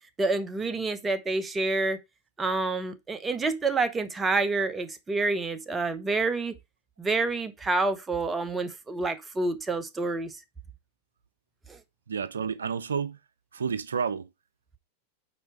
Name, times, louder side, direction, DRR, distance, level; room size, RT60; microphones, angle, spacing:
voice 1, 0.2-2.0 2.4-6.5 7.0-10.4 11.7-11.8, right 3 dB, 15° right, 0.8 m, -28 dB
voice 2, 12.1-13.2 13.5-14.3, right 6 dB, 85° right, 0.4 m, -30 dB
5.1 x 4.4 x 4.7 m
hypercardioid pair, 100°, 0 cm